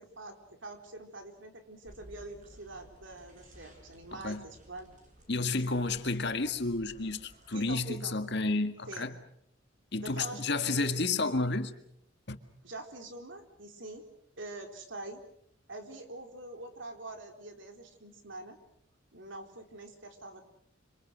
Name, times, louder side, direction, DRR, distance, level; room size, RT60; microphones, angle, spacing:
voice 1, 0.0-4.9 5.5-5.8 7.5-8.1 8.9-9.1 10.0-10.9 12.6-14.1 14.4-15.2 15.7-18.6 19.1-20.4, right 2 dB, 65° right, 4.1 m, -45 dB
sound 1, 1.8-7.7, right 1 dB, 40° right, 7.6 m, -56 dB
voice 2, 4.1-4.4 5.3-9.2 9.9-11.7 12.3-12.4, left 3 dB, 55° left, 1.9 m, -31 dB
27.0 x 26.5 x 6.3 m
head